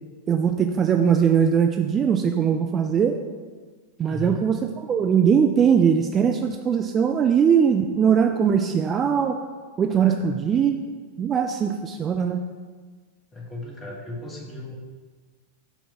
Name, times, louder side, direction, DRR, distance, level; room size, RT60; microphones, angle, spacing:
voice 1, 0.3-3.1 4.0-9.4 9.8-10.8 11.2-12.4, right 7 dB, 25° right, 5 dB, 0.3 m, -21 dB
voice 2, 4.0-4.4 9.9-10.3 13.3-14.8, left 2 dB, 15° left, -2 dB, 1.4 m, -36 dB
6.1 x 3.4 x 5.6 m, 1.4 s
figure-of-eight pair, 90°, 0 cm